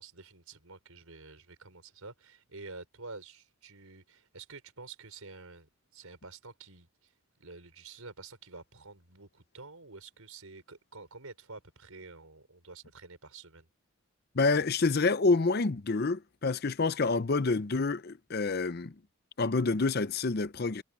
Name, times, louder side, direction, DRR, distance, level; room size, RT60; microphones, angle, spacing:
voice 1, 0.0-7.1 7.4-13.7, right 3 dB, 80° right, 4.8 m, -49 dB
voice 2, 14.3-18.9 19.4-20.8, left 3 dB, 45° left, 0.6 m, -28 dB
head